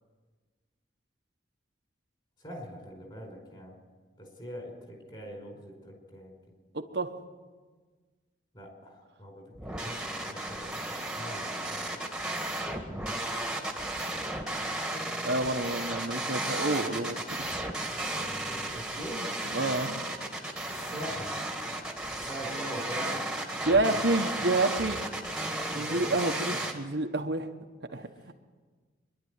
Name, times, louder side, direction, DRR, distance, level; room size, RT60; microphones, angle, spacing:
voice 1, 2.4-3.8 4.2-6.3 8.5-11.5 18.4-19.3 20.7-21.3 22.1-23.2 24.0-24.4 25.7-26.1 26.5-26.6 27.9-28.1, equal, 25° left, 2 dB, 4.7 m, -42 dB
voice 2, 6.7-7.1 15.2-17.2 19.5-20.0 23.7-25.0 25.7-27.5 27.9-28.3, right 2 dB, 60° right, 5 dB, 1.2 m, -28 dB
sound 1, 9.6-26.7, right 1 dB, 5° right, 1.9 m, -34 dB
24.5 x 11.5 x 9.6 m, 1.4 s
head